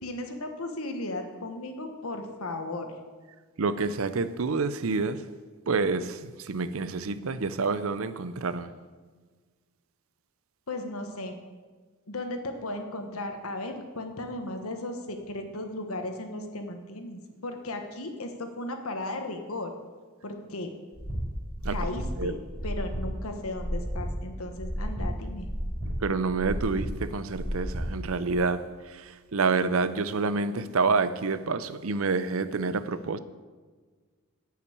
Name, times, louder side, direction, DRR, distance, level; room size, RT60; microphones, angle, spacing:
voice 1, 0.0-2.9 10.7-11.4 12.1-19.7 20.2-20.7 21.7-22.4 22.6-25.5, left 2 dB, 75° left, 1.4 m, -36 dB
voice 2, 3.6-5.2 5.7-8.7 21.6-21.8 22.2-22.3 26.0-33.2, right 4 dB, 70° right, 0.6 m, -28 dB
sound 1, 20.9-28.4, equal, 15° right, 4.1 m, -33 dB
10.5 x 5.8 x 8.5 m
head